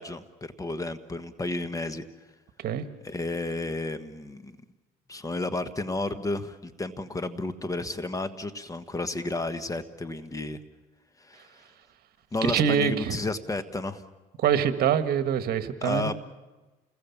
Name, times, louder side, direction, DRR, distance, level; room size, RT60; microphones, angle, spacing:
voice 1, 0.0-2.0 3.0-4.6 5.1-10.6 11.2-11.6 12.3-14.0 15.8-16.1, left 2 dB, 20° left, 11 dB, 1.3 m, -32 dB
voice 2, 12.4-13.1 14.4-16.1, right 8 dB, 65° right, 9 dB, 1.6 m, -25 dB
28.5 x 21.0 x 7.2 m, 1.2 s
cardioid pair, 110°, 17 cm